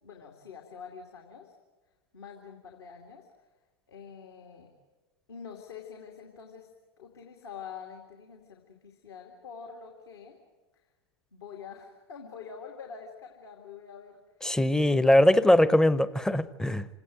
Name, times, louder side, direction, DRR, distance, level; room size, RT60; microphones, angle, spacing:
voice 1, 0.0-1.5 2.1-3.3 3.9-4.7 5.3-6.7 7.0-10.4 11.3-14.2 14.9-15.2, left 6 dB, 70° left, 2 dB, 2.7 m, -46 dB
voice 2, 14.4-16.9, left 1 dB, 5° left, 16 dB, 0.8 m, -21 dB
26.5 x 18.0 x 9.1 m, 1.2 s
figure-of-eight pair, 90°, 14 cm